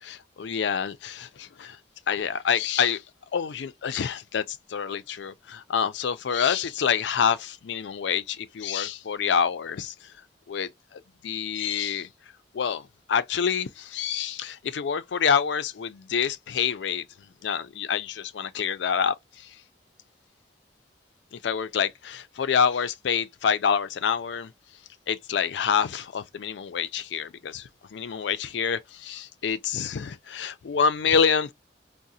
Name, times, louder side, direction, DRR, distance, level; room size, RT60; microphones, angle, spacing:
voice 1, 0.0-1.8 2.1-3.0 3.3-9.9 10.5-12.1 12.5-17.0 17.4-19.5 21.3-24.5 25.1-31.5, left 7 dB, 75° left, 0.4 m, -27 dB
4.8 x 2.1 x 2.6 m
head